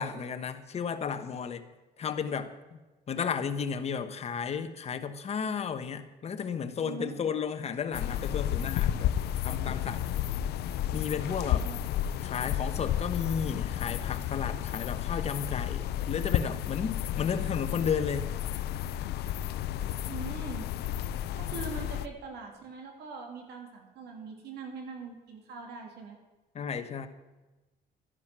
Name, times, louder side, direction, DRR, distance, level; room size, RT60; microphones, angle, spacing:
voice 1, 0.0-1.6 2.0-2.5 3.1-9.1 9.4-10.1 10.9-11.7 12.2-18.3 26.5-27.1, left 6 dB, 40° left, 9 dB, 1.1 m, -33 dB
voice 2, 6.8-7.1 11.6-11.8 20.0-20.7 21.4-26.2, right 5 dB, 75° right, 2 dB, 3.1 m, -42 dB
sound 1, 7.9-22.1, left 11 dB, 75° left, 0.5 m, -32 dB
12.5 x 10.5 x 6.1 m, 1.1 s
cardioid pair, 110°, 17 cm